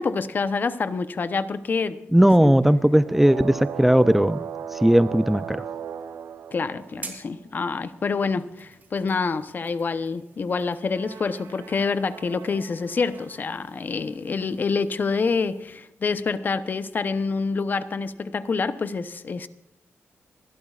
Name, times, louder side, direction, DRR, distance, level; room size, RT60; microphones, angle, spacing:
voice 1, 0.0-2.0 2.4-2.5 6.5-19.5, left 4 dB, 40° left, 13 dB, 0.8 m, -27 dB
voice 2, 2.1-4.4 4.7-5.6, equal, 5° right, 13 dB, 0.4 m, -18 dB
sound 1, 2.9-7.4 10.8-13.7, right 7 dB, 85° right, 0.8 m, -38 dB
sound 2, 6.8-15.8, right 4 dB, 40° right, 3.0 m, -49 dB
27.5 x 12.5 x 2.4 m, 0.92 s
wide cardioid pair, 130°, 5 cm